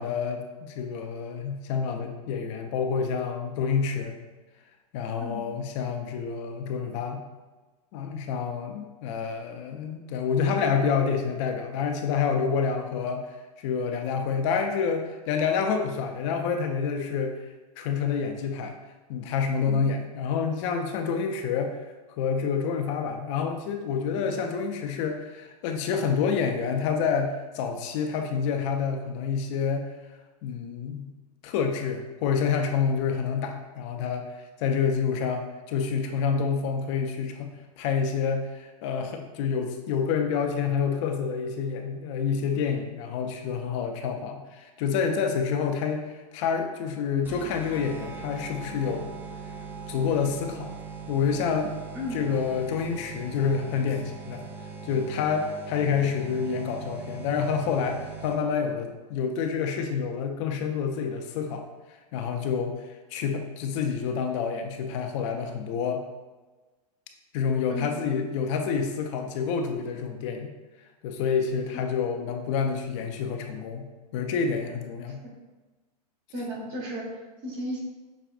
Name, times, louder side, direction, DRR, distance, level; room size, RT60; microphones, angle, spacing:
voice 1, 0.0-4.2 4.9-7.2 7.9-13.3 13.6-17.4 17.8-18.8 19.1-21.8 22.2-29.9 30.4-31.1 31.4-34.3 34.6-37.5 37.8-49.1 49.9-50.8 51.1-51.7 52.1-54.4 54.8-61.6 62.1-62.8 63.1-66.0 67.3-70.5 71.0-75.2, left 6 dB, 45° left, 4 dB, 0.5 m, -28 dB
sound 1, 47.2-58.6, right 5 dB, 10° right, 0.3 m, -40 dB
voice 2, 76.3-77.1 77.4-77.8, left 1 dB, 50° right, -1 dB, 1.3 m, -34 dB
6.0 x 2.4 x 2.4 m, 1.2 s
hypercardioid pair, 110°, 21 cm